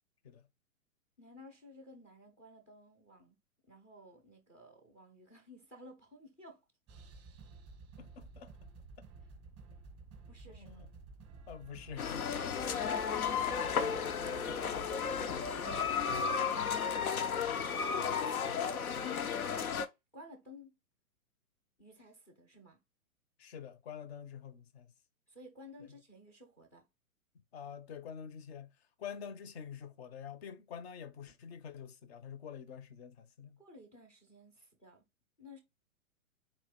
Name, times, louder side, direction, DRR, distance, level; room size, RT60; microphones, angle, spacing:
voice 1, 1.2-3.4 3.7-6.6 10.3-10.8 20.1-20.7 21.8-22.8 25.3-26.8 33.6-35.0 35.4-35.6, left 1 dB, 5° left, 0.4 m, -55 dB
sound 1, 6.9-16.3, right 4 dB, 15° right, 0.7 m, -53 dB
voice 2, 8.0-8.5 10.5-10.9 11.5-12.3 23.4-24.9 25.8-25.9 27.5-28.7 29.0-33.6, left 7 dB, 45° left, 0.7 m, -47 dB
sound 2, 12.0-19.9, left 6 dB, 80° left, 0.7 m, -33 dB
4.1 x 2.5 x 3.5 m
hypercardioid pair, 120°, 43 cm